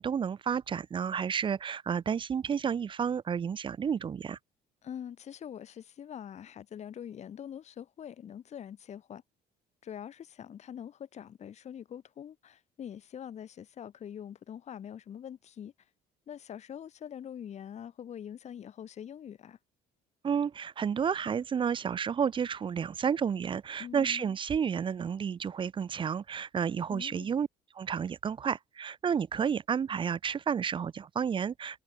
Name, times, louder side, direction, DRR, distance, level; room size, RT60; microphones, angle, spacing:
voice 1, 0.0-4.4 20.2-27.5 27.8-31.8, right 7 dB, 30° right, 0.5 m, -31 dB
voice 2, 4.8-9.2 9.8-15.7 16.3-19.6 23.8-24.4 26.9-27.3, left 9 dB, 40° left, 0.9 m, -44 dB
cardioid pair, 110°, 17 cm